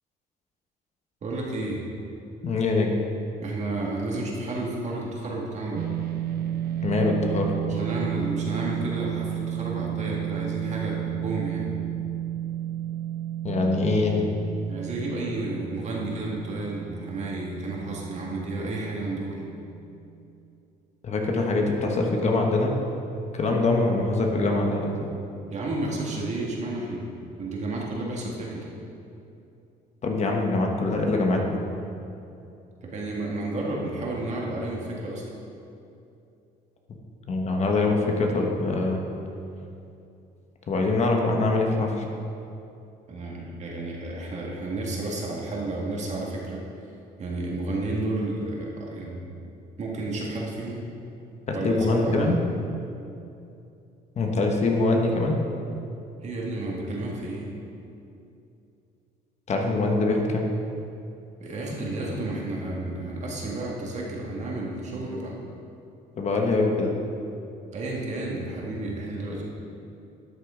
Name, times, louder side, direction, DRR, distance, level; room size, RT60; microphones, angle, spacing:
voice 1, 1.2-1.9 3.4-5.9 7.6-11.7 14.7-19.4 25.5-27.1 27.4-28.6 32.8-35.3 43.1-46.6 47.2-49.2 49.8-50.8 51.5-52.4 56.2-57.5 61.4-65.4 67.7-69.4, right 2 dB, 45° right, -2 dB, 1.9 m, -31 dB
voice 2, 2.4-2.9 6.8-7.5 13.4-14.2 21.0-22.7 23.3-25.1 30.0-31.6 37.3-39.0 40.7-42.0 51.5-52.4 54.2-55.4 59.5-60.5 66.2-66.9, left 3 dB, 40° left, 1 dB, 1.2 m, -23 dB
sound 1, 5.8-20.2, right 11 dB, 65° right, 0.6 m, -33 dB
12.5 x 6.7 x 3.8 m, 2.7 s
cardioid pair, 110°, 17 cm